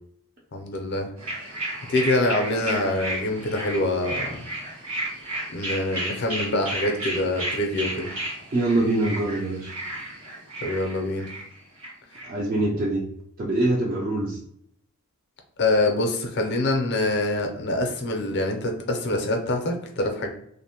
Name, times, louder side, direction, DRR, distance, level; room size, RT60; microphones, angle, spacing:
voice 1, 0.5-1.1 1.9-4.5 5.5-8.1 10.6-11.3 15.6-20.3, left 2 dB, 50° left, 3 dB, 0.5 m, -25 dB
sound 1, 1.2-12.3, right 1 dB, 70° right, 1.1 m, -33 dB
voice 2, 8.5-9.7 12.2-13.0 13.4-14.4, right 2 dB, 40° right, -3 dB, 0.4 m, -24 dB
2.5 x 2.0 x 2.8 m, 0.71 s
head